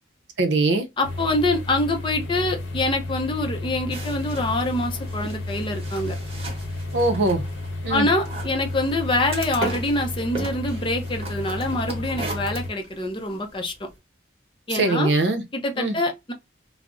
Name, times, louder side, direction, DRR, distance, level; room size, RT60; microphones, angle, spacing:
voice 1, 0.4-0.9 6.9-7.4 7.8-8.1 14.7-15.4 15.8-16.0, right 2 dB, 70° right, 0.6 m, -21 dB
sound 1, 1.0-12.7, left 2 dB, 80° left, 0.8 m, -32 dB
voice 2, 1.0-6.2 7.9-13.9 14.7-15.1 15.5-16.3, left 2 dB, 25° left, 0.5 m, -25 dB
sound 2, 3.9-13.9, right 2 dB, 30° right, 1.0 m, -38 dB
2.4 x 2.0 x 3.6 m
head